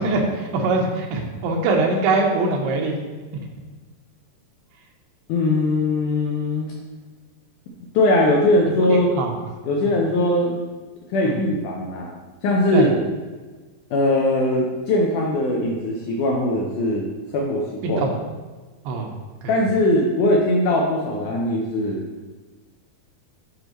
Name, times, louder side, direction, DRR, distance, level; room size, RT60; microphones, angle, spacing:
voice 1, 0.0-3.0 8.9-9.3 11.2-11.3 12.7-12.9 17.8-18.1 18.9-19.1, right 3 dB, 85° right, 0 dB, 3.0 m, -22 dB
voice 2, 5.3-6.7 7.9-9.2 9.6-10.5 11.1-12.1 12.4-12.9 13.9-17.1 17.3-18.0 19.5-22.0, left 1 dB, 80° left, -1 dB, 1.8 m, -20 dB
10.0 x 5.5 x 3.0 m, 1.3 s
omnidirectional pair, 4.6 m